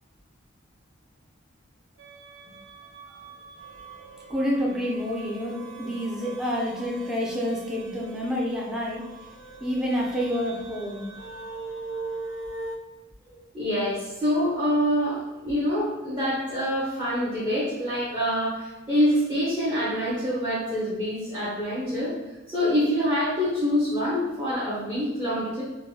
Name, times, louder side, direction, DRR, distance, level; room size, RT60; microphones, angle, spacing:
sound 1, 2.0-12.8, right 3 dB, 65° right, 0.4 m, -41 dB
voice 1, 4.3-9.1 9.6-11.1, equal, 5° right, -4 dB, 0.4 m, -28 dB
voice 2, 13.3-22.1 22.5-25.6, equal, 20° right, -10 dB, 0.9 m, -26 dB
3.7 x 2.2 x 2.8 m, 1.1 s
head